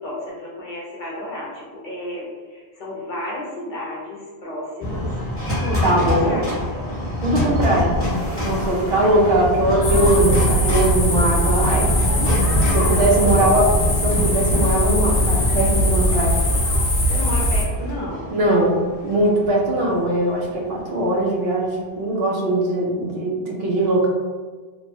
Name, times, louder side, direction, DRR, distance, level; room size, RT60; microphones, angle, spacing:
voice 1, 0.0-5.1 5.6-6.9 8.5-9.3 12.6-13.6 17.1-18.3, left 1 dB, 55° left, -5 dB, 0.7 m, -32 dB
sound 1, 4.8-21.0, left 1 dB, 15° left, 0.9 m, -26 dB
voice 2, 5.8-6.4 7.2-8.0 8.4-11.9 12.7-13.6 14.0-16.4 18.3-24.1, right 1 dB, 70° right, -2 dB, 0.8 m, -20 dB
sound 2, 9.8-17.6, equal, 90° left, 0.9 m, -20 dB
3.1 x 2.1 x 2.6 m, 1.4 s
omnidirectional pair, 1.1 m